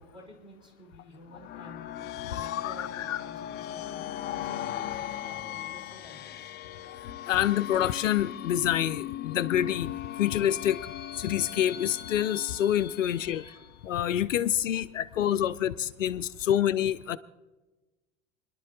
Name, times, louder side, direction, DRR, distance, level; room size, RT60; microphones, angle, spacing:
voice 1, 0.0-6.6 13.0-13.7 14.4-14.8 16.1-16.2 16.4-16.6, left 1 dB, 10° right, 0 dB, 4.8 m, -52 dB
sound 1, 1.3-13.8, left 12 dB, 25° left, 0.5 m, -38 dB
voice 2, 2.4-3.2 7.3-9.9 10.2-10.9 11.2-13.4 13.8-17.2, left 11 dB, 75° left, 13 dB, 0.5 m, -27 dB
30.0 x 11.0 x 2.3 m, 1.2 s
figure-of-eight pair, 75°, 39 cm